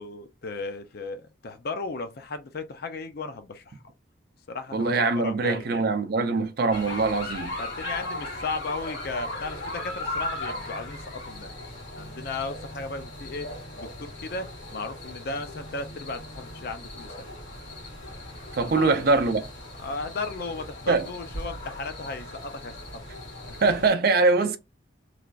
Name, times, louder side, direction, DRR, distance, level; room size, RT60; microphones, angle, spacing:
voice 1, 0.0-3.8 4.5-5.8 7.6-11.5 12.0-13.5 13.8-17.3 18.6-19.1 19.8-22.7 23.5-23.6, left 3 dB, 50° left, 0.5 m, -35 dB
voice 2, 4.7-7.6 18.6-19.4 20.9-21.0 23.6-24.6, right 3 dB, 50° right, 0.4 m, -23 dB
sound 1, 6.7-23.9, left 1 dB, 70° left, 1.5 m, -38 dB
3.2 x 2.5 x 2.3 m
head